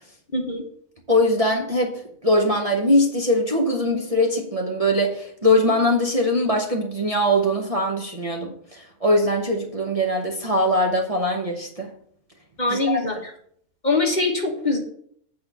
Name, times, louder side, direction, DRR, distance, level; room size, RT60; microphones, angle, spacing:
voice 1, 1.1-11.9 12.7-13.2, left 1 dB, 25° right, 1 dB, 1.0 m, -22 dB
voice 2, 12.6-13.3 13.8-14.8, left 2 dB, 35° left, 1 dB, 1.2 m, -23 dB
8.5 x 4.3 x 6.9 m, 0.64 s
omnidirectional pair, 1.5 m